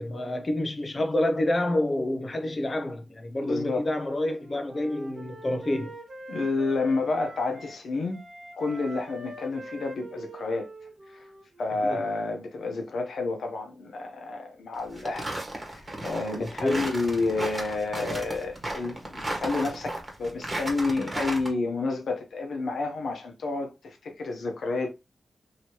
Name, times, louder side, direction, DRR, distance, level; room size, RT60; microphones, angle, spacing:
voice 1, 0.0-6.0 11.8-12.0 16.4-16.8, left 1 dB, 35° left, 0.5 m, -28 dB
voice 2, 3.4-3.9 6.3-8.2 8.6-10.7 11.1-11.2 11.6-24.9, left 3 dB, 80° left, 0.9 m, -30 dB
Wind instrument woodwind instrument, 4.2-7.8 8.1-11.9, right 1 dB, 45° right, 1.1 m, -44 dB
sound 1, 14.7-21.5, right 1 dB, 20° right, 1.3 m, -34 dB
3.1 x 2.9 x 2.8 m
wide cardioid pair, 100°, 0 cm